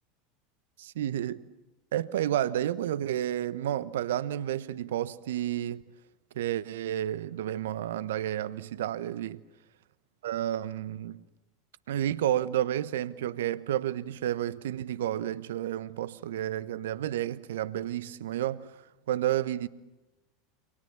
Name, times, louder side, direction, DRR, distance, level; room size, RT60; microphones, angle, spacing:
voice 1, 0.8-1.4 1.9-5.8 6.3-9.4 10.2-11.2 11.9-18.7 19.1-19.7, right 12 dB, 70° right, 1.1 m, -31 dB
29.0 x 27.0 x 7.3 m
hypercardioid pair, 85°, 0 cm